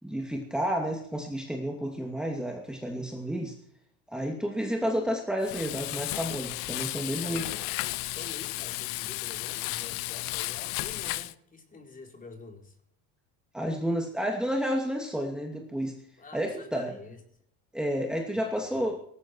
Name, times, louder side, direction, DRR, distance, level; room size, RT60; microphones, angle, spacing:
voice 1, 0.0-3.5 4.1-7.5 13.5-16.0 16.3-16.9 17.7-19.0, equal, ahead, 1 dB, 2.6 m, -31 dB
Frying (food), 5.4-11.3, left 20 dB, 85° left, 0.9 m, -34 dB
voice 2, 7.1-12.8 16.2-17.2 18.3-18.8, left 3 dB, 25° left, 3 dB, 4.3 m, -47 dB
19.0 x 15.0 x 4.7 m, 0.66 s
cardioid pair, 125°, 35 cm